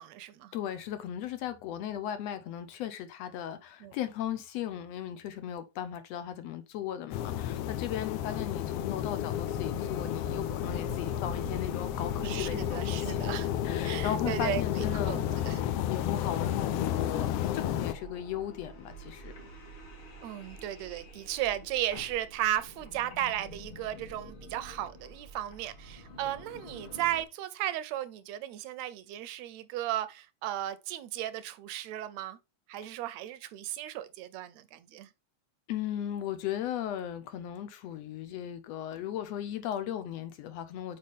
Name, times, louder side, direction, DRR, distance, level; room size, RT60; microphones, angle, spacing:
voice 1, 0.0-0.5 3.8-3.9 12.2-13.5 13.8-15.6 20.2-32.4 32.7-35.1, right 12 dB, 75° right, 1.8 m, -35 dB
voice 2, 0.5-13.2 13.6-15.3 15.8-19.3 35.7-41.0, left 10 dB, 75° left, 1.7 m, -37 dB
sound 1, 7.1-17.9, left 11 dB, 90° left, 1.3 m, -32 dB
sound 2, 9.3-27.2, right 1 dB, 50° left, 2.1 m, -46 dB
6.8 x 5.1 x 3.5 m
omnidirectional pair, 3.4 m